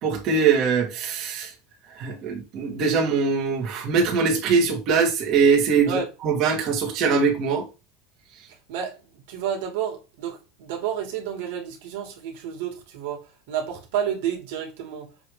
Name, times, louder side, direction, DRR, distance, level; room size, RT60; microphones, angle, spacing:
voice 1, 0.0-1.5 2.0-7.6, right 5 dB, 40° right, 2.2 m, -22 dB
voice 2, 8.7-15.1, right 8 dB, 75° right, 2.4 m, -30 dB
7.0 x 3.5 x 4.9 m
supercardioid pair, 165°, 0 cm